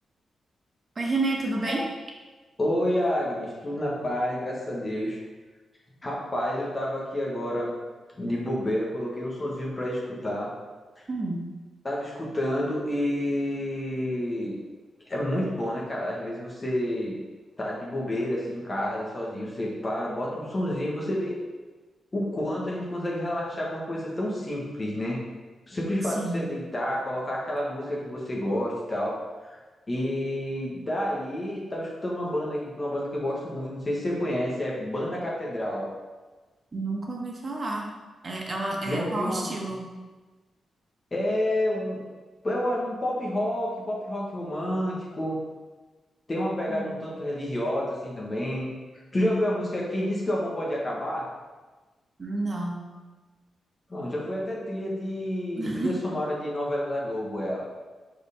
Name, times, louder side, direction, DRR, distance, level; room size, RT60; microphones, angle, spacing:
voice 1, 0.9-1.8 11.1-11.4 26.1-26.4 36.7-37.9 38.2-39.9 46.7-47.0 52.2-52.8 55.5-55.9, right 2 dB, 40° right, -1 dB, 1.4 m, -30 dB
voice 2, 2.6-5.2 6.0-7.7 8.1-10.5 11.0-11.1 11.8-14.6 15.1-17.2 17.6-21.4 22.1-25.2 25.7-29.6 29.9-35.9 38.8-39.6 41.1-42.0 42.4-45.3 46.3-48.7 49.1-51.3 53.9-57.7, left 1 dB, 35° left, -4 dB, 1.5 m, -29 dB
5.1 x 4.3 x 5.1 m, 1.3 s
cardioid pair, 60°, 0 cm